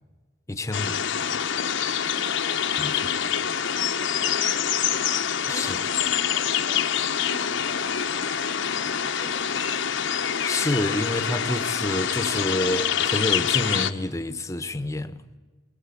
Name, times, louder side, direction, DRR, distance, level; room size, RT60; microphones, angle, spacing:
voice 1, 0.5-1.0 2.8-3.1 5.5-5.8 10.3-15.2, left 1 dB, 15° left, 1.0 m, -28 dB
sound 1, 0.7-13.9, left 8 dB, 65° left, 1.0 m, -26 dB
voice 2, 2.1-2.4 2.8-3.7 4.0-5.0 5.5-9.9, equal, 30° right, 2.2 m, -49 dB
sound 2, 7.5-12.5, right 2 dB, 65° right, 5.7 m, -56 dB
24.0 x 21.0 x 8.4 m
head